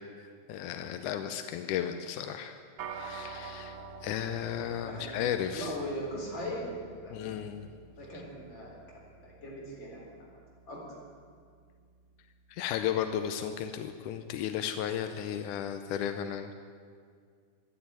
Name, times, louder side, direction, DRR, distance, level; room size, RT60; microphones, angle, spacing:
voice 1, 0.2-2.6 2.9-5.7 7.1-7.7 12.5-16.6, left 9 dB, 85° left, 8 dB, 2.2 m, -34 dB
sound 1, 2.8-12.3, right 5 dB, 75° right, 1.1 m, -48 dB
voice 2, 4.8-5.2 5.5-6.6 7.0-7.3 8.0-8.8 9.2-10.0 10.7-10.8, equal, 35° left, -4 dB, 4.9 m, -39 dB
12.5 x 11.5 x 10.0 m, 2.1 s
omnidirectional pair, 3.6 m